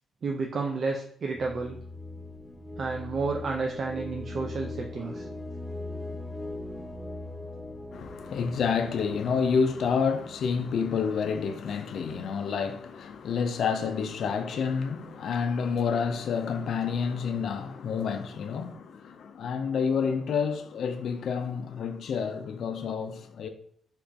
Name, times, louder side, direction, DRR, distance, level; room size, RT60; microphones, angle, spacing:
voice 1, 0.2-1.8 2.8-5.3, right 4 dB, 55° right, 0.3 m, -31 dB
sound 1, 1.3-11.2, left 2 dB, 5° left, 0.5 m, -40 dB
voice 2, 7.9-23.5, left 6 dB, 70° left, 0.3 m, -29 dB
2.9 x 2.5 x 3.3 m
cardioid pair, 90°, 0 cm